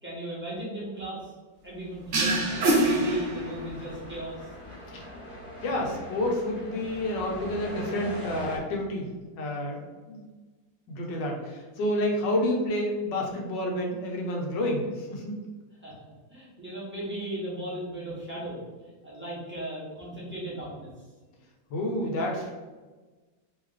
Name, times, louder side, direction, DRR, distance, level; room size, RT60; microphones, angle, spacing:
voice 1, 0.0-1.3 1.6-4.5 15.8-16.0 16.3-18.6 19.0-20.9, right 1 dB, 10° right, -7 dB, 1.0 m, -36 dB
sound 1, 2.1-3.9, right 2 dB, 60° right, 0.8 m, -25 dB
sound 2, 2.5-8.6, equal, 20° left, 1.0 m, -41 dB
voice 2, 5.6-9.1 9.4-9.8 10.1-10.2 10.9-15.4 21.7-22.5, left 1 dB, 75° left, 0 dB, 1.5 m, -29 dB
3.5 x 3.1 x 3.7 m, 1.3 s
omnidirectional pair, 2.0 m